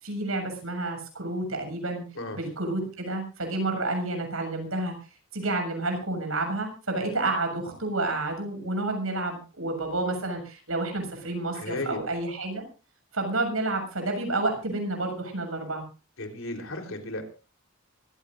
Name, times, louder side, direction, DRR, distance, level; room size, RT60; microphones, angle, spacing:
voice 1, 0.0-2.0 2.3-4.9 5.3-12.6 13.1-15.8, right 2 dB, 80° right, 4 dB, 7.0 m, -30 dB
voice 2, 11.5-12.0 16.2-17.2, left 2 dB, 75° left, 4 dB, 3.8 m, -34 dB
24.5 x 16.0 x 2.6 m, 0.33 s
head